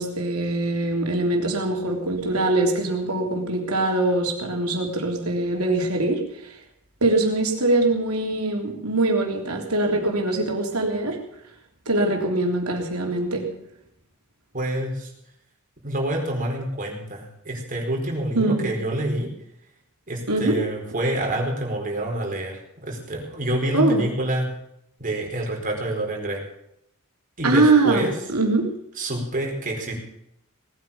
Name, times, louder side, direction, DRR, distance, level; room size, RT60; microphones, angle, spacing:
voice 1, 0.0-6.2 7.0-11.2 11.9-13.5 18.3-18.7 20.3-20.6 23.7-24.0 27.4-28.7, right 2 dB, 75° right, 2 dB, 3.5 m, -22 dB
voice 2, 14.5-15.1 15.8-19.3 20.1-24.5 25.0-26.4 27.4-28.1 29.0-29.9, right 1 dB, 40° right, 0 dB, 4.7 m, -27 dB
19.0 x 9.5 x 7.1 m, 0.77 s
head